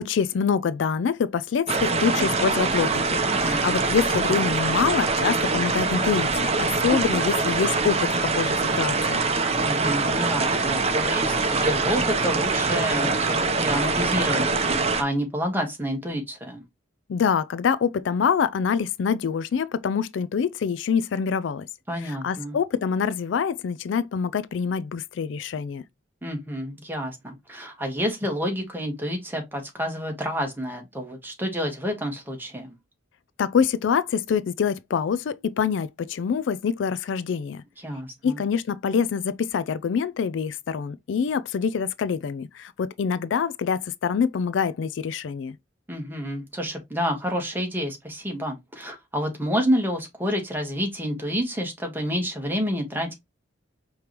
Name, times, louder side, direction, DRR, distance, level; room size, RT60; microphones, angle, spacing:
voice 1, 0.0-9.2 17.1-21.7 22.0-25.8 33.4-37.6 38.2-45.6, left 6 dB, 75° left, 0.4 m, -25 dB
sound 1, 1.7-15.0, right 3 dB, 35° right, 0.8 m, -24 dB
voice 2, 9.6-14.4 15.0-16.6 21.9-22.6 26.2-32.7 37.8-38.4 45.9-53.1, equal, 10° right, 1.4 m, -29 dB
5.1 x 3.2 x 2.9 m
head